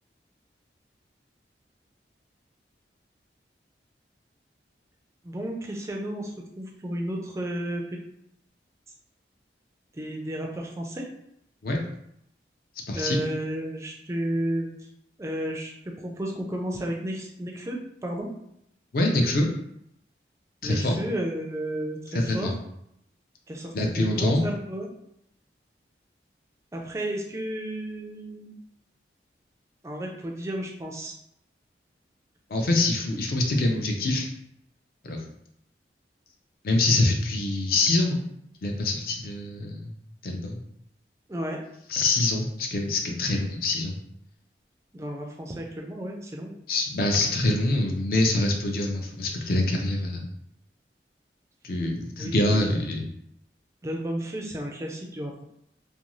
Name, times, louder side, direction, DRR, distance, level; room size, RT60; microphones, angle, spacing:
voice 1, 5.2-8.0 9.9-11.1 12.9-14.7 15.2-18.3 20.6-22.5 23.5-25.0 26.7-28.5 29.8-31.2 41.3-41.6 44.9-46.6 52.2-52.7 53.8-55.4, right 1 dB, 15° right, 0 dB, 0.3 m, -32 dB
voice 2, 12.9-13.2 18.9-19.5 20.6-21.0 22.1-22.5 23.7-24.4 32.5-34.3 35.0-35.2 36.6-38.2 38.6-39.9 40.2-40.6 41.9-44.0 46.7-50.3 51.6-53.1, left 2 dB, 55° left, 2 dB, 0.5 m, -25 dB
2.5 x 2.2 x 3.0 m, 0.76 s
head